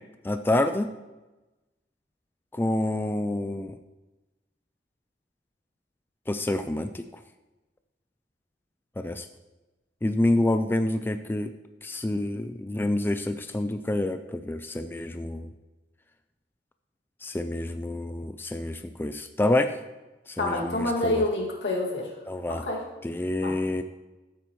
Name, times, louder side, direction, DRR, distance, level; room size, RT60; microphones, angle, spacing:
voice 1, 0.2-0.9 2.5-3.8 6.3-7.2 9.0-9.3 10.0-11.5 11.8-15.5 17.2-19.8 20.3-21.2 22.3-22.6 23.0-23.8, left 1 dB, 10° left, 8 dB, 0.3 m, -27 dB
voice 2, 20.4-22.1 22.5-22.8 23.4-23.5, left 2 dB, 75° left, -1 dB, 2.3 m, -27 dB
14.5 x 8.5 x 3.1 m, 1.1 s
head